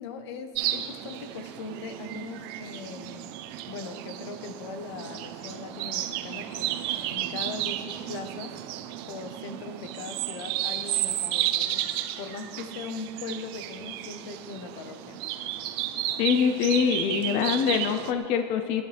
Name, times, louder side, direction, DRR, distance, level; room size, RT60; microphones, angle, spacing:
voice 1, 0.0-3.2 3.7-8.6 9.1-11.9 12.2-15.2, left 4 dB, 80° left, 8 dB, 1.1 m, -40 dB
sound 1, 0.5-18.1, right 13 dB, 60° right, 0.7 m, -33 dB
voice 2, 16.2-18.8, left 7 dB, 45° left, 8 dB, 0.6 m, -24 dB
20.0 x 11.0 x 3.4 m, 2.4 s
supercardioid pair, 165°, 14 cm